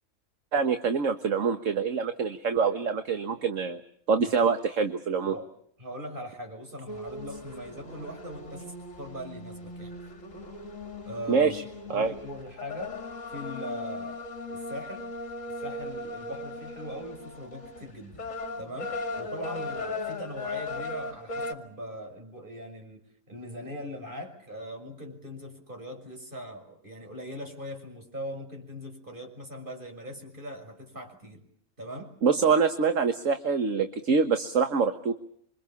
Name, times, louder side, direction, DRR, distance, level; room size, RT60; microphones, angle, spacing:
voice 1, 0.5-3.8 4.1-5.4 11.3-11.6 11.9-12.1 32.2-35.1, right 5 dB, 60° right, 8 dB, 1.7 m, -25 dB
voice 2, 5.8-8.6 9.0-10.0 11.0-11.5 11.9-13.0 13.3-15.1 15.5-18.2 18.6-23.0 23.3-31.4 31.8-32.1, equal, 35° right, 4 dB, 6.7 m, -40 dB
sound 1, 6.9-21.5, left 2 dB, 60° left, 2.9 m, -38 dB
27.5 x 25.0 x 7.2 m, 0.65 s
omnidirectional pair, 1.5 m